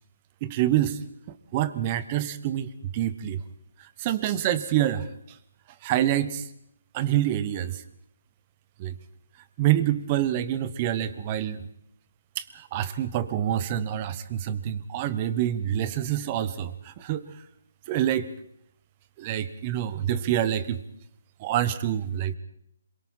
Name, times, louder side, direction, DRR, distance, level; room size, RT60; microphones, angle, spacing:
voice 1, 0.4-1.0 1.3-3.4 3.8-5.4 5.8-6.5 6.9-7.8 8.8-8.9 9.6-11.6 12.4-17.3 17.9-18.3 19.2-20.8 21.4-22.3, right 11 dB, 25° right, 14 dB, 1.1 m, -27 dB
26.0 x 23.0 x 4.5 m, 0.73 s
hypercardioid pair, 165°, 0 cm